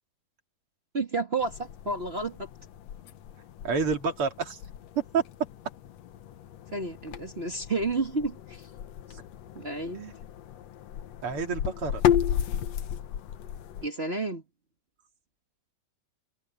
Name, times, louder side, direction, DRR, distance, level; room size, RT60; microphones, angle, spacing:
voice 1, 0.9-2.5 6.7-8.7 9.5-10.1 13.8-14.4, right 3 dB, 70° right, 0.5 m, -31 dB
sound 1, 1.4-13.9, left 10 dB, 75° left, 1.5 m, -34 dB
voice 2, 3.6-4.6 4.9-5.2 9.1-9.2 11.2-12.0, right 5 dB, 40° right, 3.1 m, -28 dB
omnidirectional pair, 4.5 m